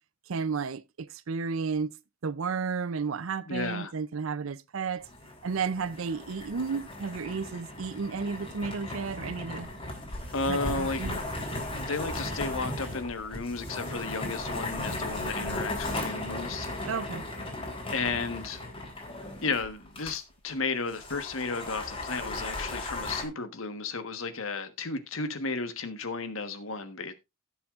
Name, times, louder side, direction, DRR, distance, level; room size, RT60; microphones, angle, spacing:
voice 1, 0.3-1.9 2.2-5.1 5.4-9.7 10.5-11.2 16.9-17.2, right 5 dB, 75° right, 0.5 m, -32 dB
voice 2, 3.5-3.9 10.3-11.1 11.8-16.7 17.9-18.6 19.4-27.1, left 3 dB, 75° left, 1.3 m, -33 dB
sound 1, 5.0-20.2 20.5-20.6 20.9-23.2, left 1 dB, 25° left, 3.7 m, -36 dB
17.0 x 7.1 x 2.5 m
head